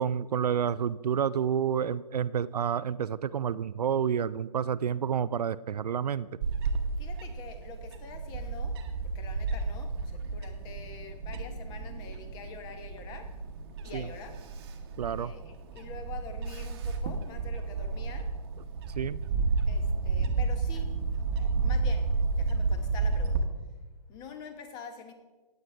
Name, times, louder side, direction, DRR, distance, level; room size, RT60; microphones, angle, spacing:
voice 1, 0.0-6.3 13.9-14.1 15.0-15.3 19.0-19.2, right 8 dB, 70° right, 16 dB, 0.4 m, -29 dB
Bird / Wind, 6.4-23.4, right 4 dB, 35° right, 1.1 m, -31 dB
voice 2, 7.0-13.3 13.8-14.4 15.1-18.3 19.7-23.5 24.1-25.1, left 5 dB, 20° left, 8 dB, 0.9 m, -46 dB
16.0 x 9.3 x 3.4 m, 1.3 s
figure-of-eight pair, 135°, 21 cm